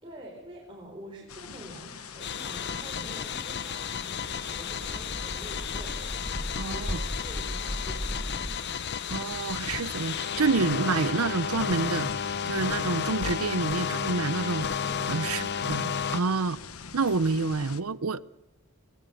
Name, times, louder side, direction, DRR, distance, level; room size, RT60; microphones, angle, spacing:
voice 1, 0.0-8.5 14.8-15.4, right 1 dB, 25° right, 4.4 m, -47 dB
sound 1, 1.3-17.8, left 6 dB, 90° left, 1.2 m, -44 dB
sound 2, 2.2-16.2, left 7 dB, 50° left, 0.8 m, -32 dB
sound 3, 3.0-8.6, equal, ahead, 1.5 m, -38 dB
voice 2, 6.6-7.0 9.1-12.1 12.5-14.7 15.1-16.6 16.9-18.2, right 4 dB, 85° right, 0.8 m, -28 dB
21.5 x 20.0 x 6.7 m
head